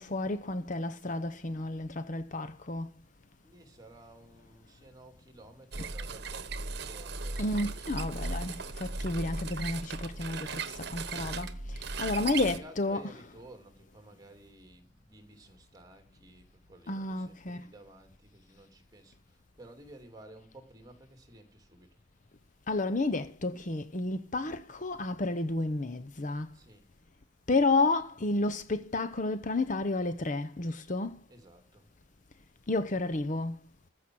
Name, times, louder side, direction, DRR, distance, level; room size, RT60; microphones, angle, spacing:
voice 1, 0.0-2.9 5.8-5.9 7.4-13.3 16.9-17.7 22.7-26.6 27.5-31.3 32.7-33.7, left 2 dB, 40° left, 0.8 m, -31 dB
voice 2, 3.4-8.3 12.1-22.0 26.5-26.8 31.3-31.9, right 1 dB, 20° right, 2.8 m, -54 dB
sound 1, 5.7-12.6, right 3 dB, 55° right, 1.2 m, -37 dB
14.5 x 6.0 x 7.7 m
head